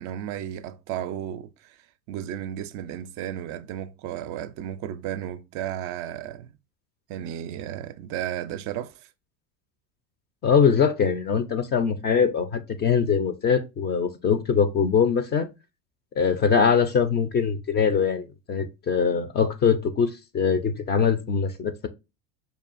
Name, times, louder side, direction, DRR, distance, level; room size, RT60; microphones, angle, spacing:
voice 1, 0.0-6.5 7.1-9.1, right 11 dB, 50° right, 0.4 m, -34 dB
voice 2, 10.4-15.5 16.2-21.9, left 6 dB, 25° left, 0.4 m, -22 dB
5.4 x 2.4 x 2.4 m
supercardioid pair, 110°, 39 cm